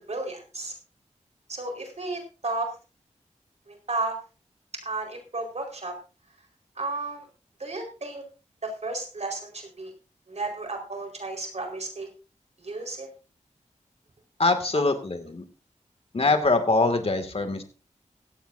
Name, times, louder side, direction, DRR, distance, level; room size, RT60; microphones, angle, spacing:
voice 1, 0.1-0.7 1.5-2.7 3.7-4.2 4.8-5.9 6.8-7.3 7.6-8.2 8.6-9.9 10.3-12.1 12.6-13.1, right 2 dB, 60° right, 3 dB, 4.5 m, -33 dB
voice 2, 14.4-15.4 16.1-17.6, left 3 dB, 50° left, 7 dB, 2.1 m, -23 dB
16.5 x 15.0 x 2.7 m, 0.34 s
wide cardioid pair, 80°, 13 cm